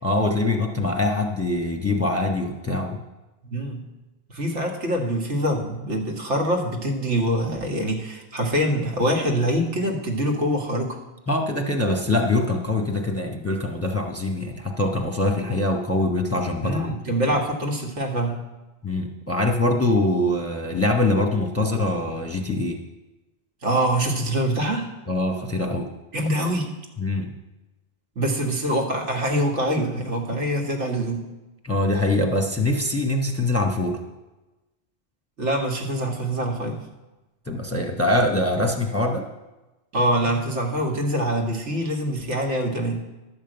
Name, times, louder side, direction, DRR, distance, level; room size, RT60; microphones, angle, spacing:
voice 1, 0.0-3.0 11.3-16.9 18.8-22.8 25.1-25.9 27.0-27.3 31.6-34.0 37.5-39.3, left 2 dB, 15° left, 3 dB, 0.8 m, -23 dB
voice 2, 3.5-3.8 4.3-11.0 16.6-18.4 23.6-24.9 26.1-26.7 28.2-31.2 35.4-36.9 39.9-43.0, right 1 dB, 85° right, 1 dB, 1.9 m, -24 dB
11.0 x 5.3 x 7.8 m, 1.1 s
omnidirectional pair, 1.2 m